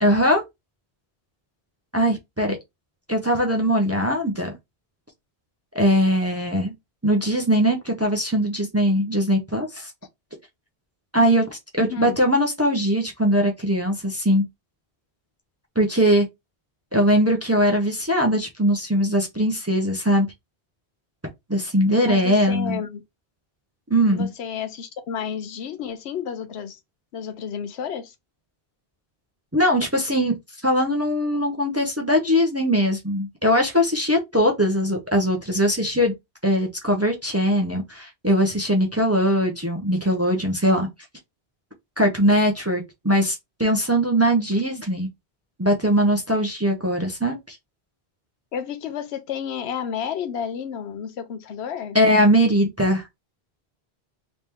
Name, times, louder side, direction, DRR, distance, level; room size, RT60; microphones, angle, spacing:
voice 1, 0.0-0.4 1.9-2.6 3.1-4.5 5.7-6.7 7.0-9.9 11.1-14.4 15.8-16.3 16.9-20.3 21.5-22.8 23.9-24.3 29.5-30.3 30.6-36.1 36.4-40.9 42.0-45.1 45.6-47.6 51.9-53.0, equal, 20° right, 0.6 m, -21 dB
voice 2, 11.8-12.2 22.0-23.0 24.1-26.8 27.1-28.1 48.5-52.0, left 7 dB, 85° left, 0.9 m, -31 dB
3.2 x 2.9 x 3.4 m
omnidirectional pair, 1.1 m